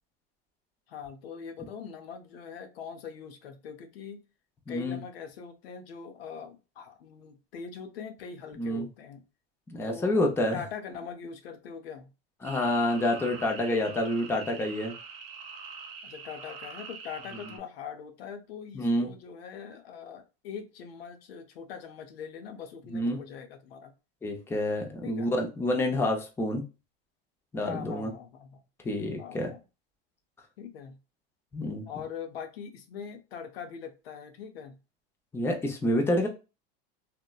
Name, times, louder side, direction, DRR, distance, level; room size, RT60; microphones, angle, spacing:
voice 1, 0.9-4.2 4.7-9.2 9.8-12.1 16.0-23.9 25.0-25.3 27.6-28.6 29.2-29.6 30.6-31.0 31.9-34.8, left 7 dB, 90° left, 7 dB, 0.6 m, -42 dB
voice 2, 4.7-5.0 8.6-8.9 9.7-10.6 12.4-14.9 18.7-19.1 22.9-23.2 24.2-26.6 27.5-28.1 28.8-29.5 31.5-31.9 35.3-36.3, left 1 dB, 10° left, 2 dB, 0.5 m, -28 dB
sound 1, 12.4-17.6, right 5 dB, 85° right, 0.7 m, -44 dB
2.9 x 2.1 x 2.3 m, 0.30 s
supercardioid pair, 115°, 29 cm